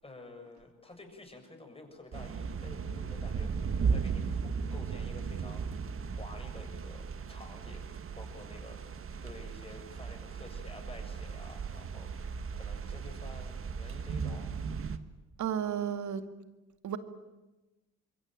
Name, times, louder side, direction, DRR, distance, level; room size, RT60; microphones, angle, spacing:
voice 1, 0.0-5.7 6.0-7.9 8.1-8.8 9.2-14.7, left 2 dB, 20° left, 7.0 m, -50 dB
sound 1, 2.1-15.0, right 5 dB, 45° right, 1.6 m, -36 dB
voice 2, 15.4-16.2 16.8-17.0, right 9 dB, 70° right, 2.2 m, -32 dB
26.0 x 22.0 x 9.1 m
cardioid pair, 90°, 30 cm